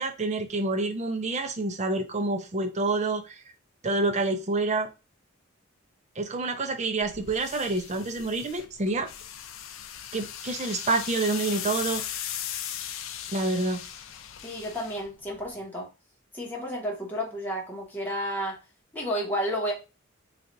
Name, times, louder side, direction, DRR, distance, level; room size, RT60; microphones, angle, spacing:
voice 1, 0.0-3.4 3.8-4.9 6.2-9.1 10.1-12.0 13.3-13.8, right 3 dB, 35° right, 0.5 m, -28 dB
sound 1, 7.0-15.6, left 10 dB, 70° left, 0.4 m, -38 dB
voice 2, 14.4-15.9 16.3-18.6 18.9-19.7, equal, 10° left, 1.1 m, -31 dB
3.3 x 2.5 x 3.8 m
head